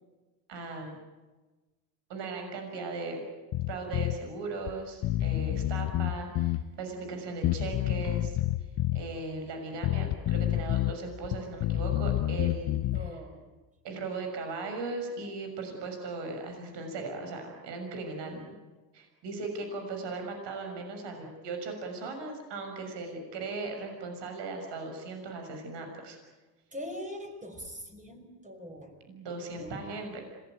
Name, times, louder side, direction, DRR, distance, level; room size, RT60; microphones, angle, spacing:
voice 1, 0.5-1.0 2.1-3.2 3.7-8.4 8.9-13.0 13.8-18.5 18.9-26.2 29.1-30.2, right 3 dB, 65° right, 4 dB, 6.5 m, -38 dB
Bass guitar, 3.5-4.2 4.7-4.8 5.0-6.6 7.4-9.0 9.8-10.9 11.2-13.1, left 14 dB, 50° left, 1.1 m, -29 dB
voice 2, 12.9-13.5 18.2-18.5 26.7-29.0 29.6-29.9, equal, 15° right, 2 dB, 5.8 m, -42 dB
26.5 x 19.0 x 9.3 m, 1.2 s
supercardioid pair, 75°, 46 cm